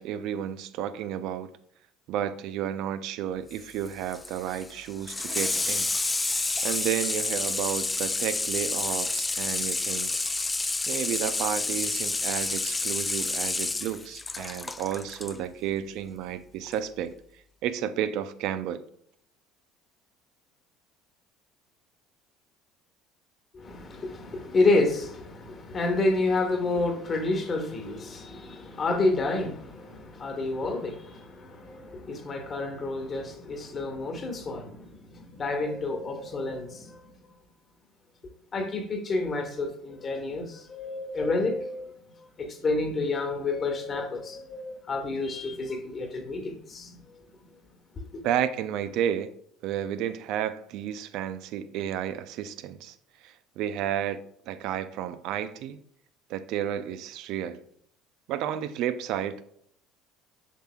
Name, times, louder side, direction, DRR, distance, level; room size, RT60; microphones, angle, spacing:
voice 1, 0.0-1.5 2.1-5.9 6.2-10.2 10.9-17.1 17.6-18.8 48.2-49.3 49.6-53.0 53.2-55.8 56.3-57.6 58.3-59.4, right 10 dB, 65° right, 0.5 m, -32 dB
Water tap faucet / Sink (filling or washing), 3.5-15.4 16.7-16.8, left 3 dB, 20° left, 0.3 m, -29 dB
voice 2, 23.5-37.0 38.5-41.9 42.2-47.0 48.1-48.2, left 2 dB, 40° left, 1.4 m, -29 dB
7.2 x 5.6 x 2.3 m
hypercardioid pair, 70°, 0 cm